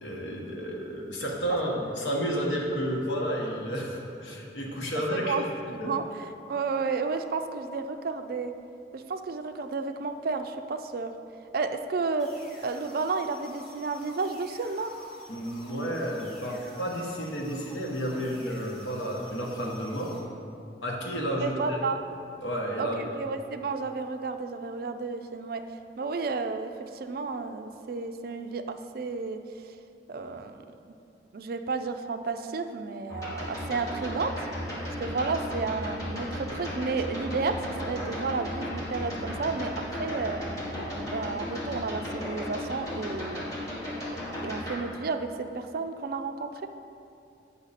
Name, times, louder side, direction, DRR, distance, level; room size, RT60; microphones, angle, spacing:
voice 1, 0.0-5.4 5.8-5.9 15.3-20.1 20.8-21.8 22.4-23.0, equal, 85° left, -1 dB, 1.3 m, -31 dB
voice 2, 5.1-5.4 5.7-6.0 6.5-8.5 8.9-11.1 11.5-12.3 12.6-14.9 21.4-22.0 22.8-25.6 26.0-29.4 30.1-30.6 31.3-34.5 35.0-40.4 40.9-43.6 44.4-46.7, right 4 dB, 55° right, 8 dB, 0.4 m, -32 dB
sound 1, 12.2-20.2, equal, ahead, 1.7 m, -51 dB
sound 2, 33.1-44.8, equal, 20° left, 1.5 m, -35 dB
8.5 x 5.7 x 4.1 m, 2.6 s
head